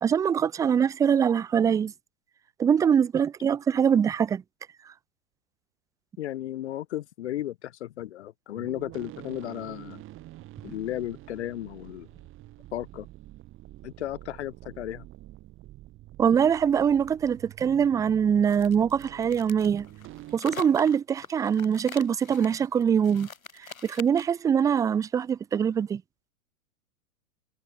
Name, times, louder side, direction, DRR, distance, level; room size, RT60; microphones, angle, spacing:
voice 1, 0.0-1.9 2.6-4.4 16.2-19.9 20.3-23.3 23.8-26.0, right 7 dB, 10° right, 0.6 m, -23 dB
voice 2, 6.2-10.0 10.6-12.1 12.7-13.1 13.8-15.0, left 13 dB, 50° left, 0.9 m, -34 dB
sound 1, 8.5-20.4, right 16 dB, 30° right, 4.5 m, -47 dB
sound 2, 18.5-24.4, left 6 dB, 70° left, 4.7 m, -44 dB
figure-of-eight pair, 105°, 42 cm